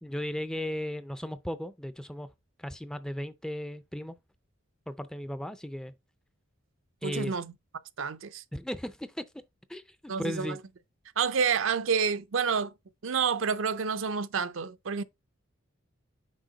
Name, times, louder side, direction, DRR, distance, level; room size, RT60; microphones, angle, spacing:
voice 1, 0.0-2.3 2.6-4.2 4.9-5.9 7.0-7.3 8.5-9.2 9.7-10.6, equal, 5° left, 0.3 m, -36 dB
voice 2, 7.0-7.5 8.0-8.4 10.1-10.6 11.2-12.7 13.0-15.0, right 6 dB, 75° right, 0.5 m, -29 dB
6.3 x 4.5 x 3.9 m
head